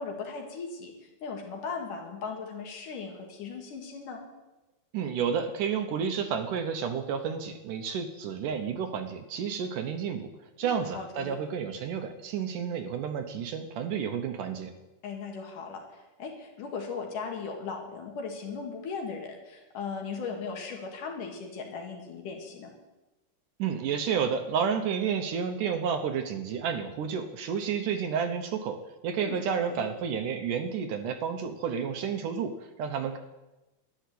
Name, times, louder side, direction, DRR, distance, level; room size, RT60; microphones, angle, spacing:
voice 1, 0.0-4.2 10.6-11.4 15.0-22.7 29.2-29.9, left 5 dB, 65° left, 2 dB, 3.5 m, -38 dB
voice 2, 4.9-10.3 10.6-14.7 23.6-33.2, right 7 dB, 70° right, 7 dB, 2.3 m, -31 dB
12.5 x 10.5 x 8.4 m, 1.0 s
omnidirectional pair, 4.2 m